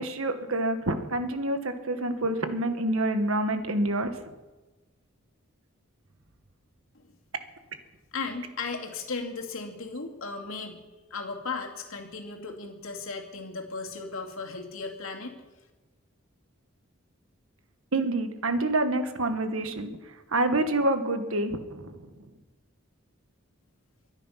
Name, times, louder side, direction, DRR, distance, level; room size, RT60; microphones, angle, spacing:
voice 1, 0.0-4.1 17.9-19.9 20.3-21.9, right 2 dB, 80° right, 8 dB, 1.5 m, -27 dB
voice 2, 8.1-10.8 11.1-15.4, left 4 dB, 80° left, 1 dB, 2.6 m, -36 dB
23.0 x 9.9 x 5.8 m, 1.2 s
head